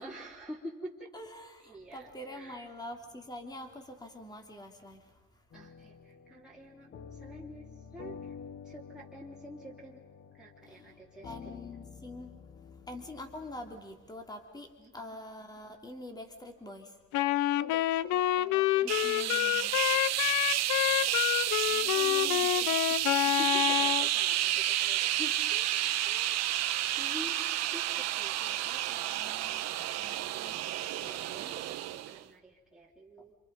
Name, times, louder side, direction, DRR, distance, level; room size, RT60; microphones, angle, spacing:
voice 1, 0.0-1.1 1.6-2.7 5.5-8.3 8.6-10.0 10.3-11.8 14.8-15.2 17.5-19.6 19.9-20.1 21.7-22.4 22.9-23.0 23.2-25.2 27.0-27.4 27.7-29.7 30.0-30.6 31.0-33.4, right 1 dB, ahead, -6 dB, 3.2 m, -48 dB
voice 2, 1.1-5.1 10.7-10.9 11.2-12.3 12.8-14.7 14.9-16.9 18.8-19.8 21.4-22.8 25.2-25.7 26.1-26.5 30.5-30.6, left 1 dB, 15° left, 4 dB, 3.1 m, -45 dB
sound 1, 5.5-13.8, left 6 dB, 35° left, 1.3 m, -49 dB
Wind instrument woodwind instrument, 17.1-24.1, left 15 dB, 75° left, 0.7 m, -28 dB
sound 2, 18.9-32.2, right 13 dB, 60° right, 1.3 m, -31 dB
28.5 x 27.5 x 5.5 m, 1.2 s
cardioid pair, 140°, 29 cm